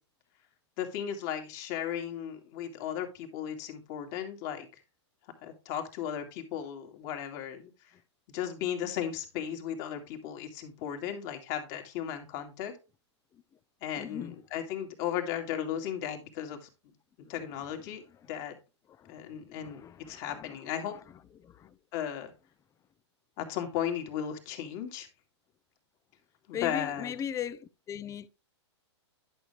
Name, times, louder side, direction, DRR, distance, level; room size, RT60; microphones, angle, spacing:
voice 1, 0.8-4.7 5.4-7.7 8.3-12.7 13.8-16.7 17.3-18.0 18.3-18.6 19.1-19.8 20.1-20.9 21.9-22.3 23.4-25.1 26.5-27.1, left 9 dB, 45° left, 2.3 m, -35 dB
voice 2, 14.0-14.4 17.2-17.3 18.1-18.2 19.0-21.0 21.4-21.8 26.5-28.3, left 9 dB, 20° left, 0.5 m, -40 dB
11.0 x 6.5 x 3.3 m
hypercardioid pair, 115°, 15 cm